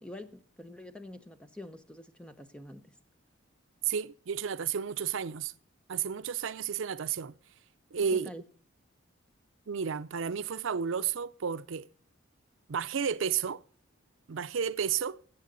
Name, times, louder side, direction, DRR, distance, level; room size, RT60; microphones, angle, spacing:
voice 1, 0.0-3.0 8.0-8.4, left 1 dB, 5° left, 0.7 m, -46 dB
voice 2, 3.8-5.5 5.9-7.3 7.9-8.3 9.7-11.9 12.7-13.6 14.3-15.2, right 7 dB, 75° right, 0.5 m, -32 dB
15.0 x 8.1 x 3.9 m
head